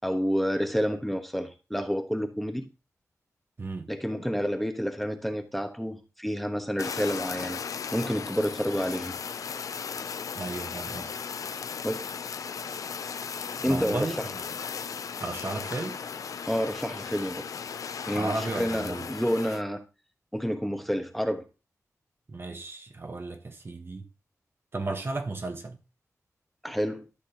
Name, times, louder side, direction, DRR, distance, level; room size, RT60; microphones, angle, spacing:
voice 1, 0.0-2.7 3.9-7.6 7.9-9.1 11.8-12.1 13.6-14.2 16.5-17.4 18.1-19.8 20.3-21.4 26.6-27.1, equal, ahead, 1.2 m, -29 dB
voice 2, 3.6-3.9 10.3-11.1 13.6-14.2 15.2-16.0 18.1-19.1 22.3-24.1 24.7-25.8, right 3 dB, 40° right, 1.2 m, -34 dB
Fire, 6.8-19.6, left 6 dB, 75° left, 0.4 m, -36 dB
12.0 x 6.0 x 2.9 m
wide cardioid pair, 85°, 6 cm